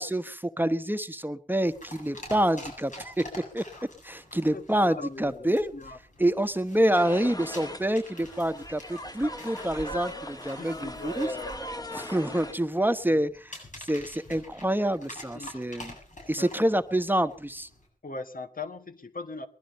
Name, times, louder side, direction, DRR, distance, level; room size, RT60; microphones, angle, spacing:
voice 1, 0.0-3.2 3.5-3.6 4.0-5.7 6.2-11.3 11.9-15.9 16.3-17.7, right 1 dB, 15° right, 11 dB, 1.0 m, -27 dB
sound 1, 1.5-17.9, left 1 dB, 65° left, 7.8 m, -48 dB
voice 2, 4.5-6.0 10.6-11.5 13.1-13.2 15.3-15.5 16.4-16.5 18.0-19.5, left 2 dB, 85° left, 9 dB, 1.5 m, -39 dB
sound 2, 6.9-12.5, left 1 dB, 25° left, 2.0 m, -39 dB
20.5 x 12.5 x 5.4 m, 0.40 s
wide cardioid pair, 55°, 14 cm